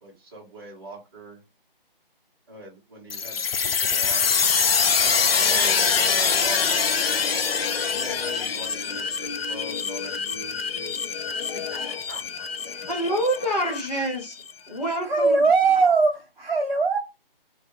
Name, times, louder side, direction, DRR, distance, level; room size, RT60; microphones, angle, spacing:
voice 1, 0.0-1.4 2.5-4.5 5.0-7.1 7.9-11.0 11.5-12.9 13.9-14.0, right 1 dB, 25° right, 0.8 m, -41 dB
sound 1, 3.1-14.5, left 6 dB, 85° left, 0.5 m, -25 dB
voice 2, 12.9-14.3 14.7-15.5, right 1 dB, 45° left, 1.0 m, -26 dB
voice 3, 15.1-17.0, right 4 dB, 60° right, 0.5 m, -20 dB
2.2 x 2.1 x 3.1 m
figure-of-eight pair, 160°, 29 cm